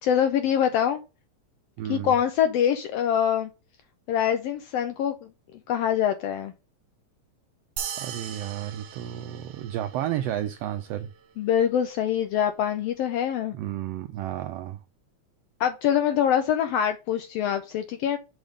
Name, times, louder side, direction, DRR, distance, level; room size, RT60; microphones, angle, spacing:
voice 1, 0.0-1.0 1.9-3.5 4.1-5.3 5.7-6.5 11.4-13.5 15.6-18.2, left 9 dB, 80° left, 1.4 m, -24 dB
voice 2, 1.8-2.1 8.0-11.1 13.5-14.8, right 12 dB, 85° right, 1.4 m, -32 dB
sound 1, 7.8-10.5, right 8 dB, 65° right, 1.7 m, -38 dB
6.2 x 3.6 x 5.0 m
omnidirectional pair, 3.3 m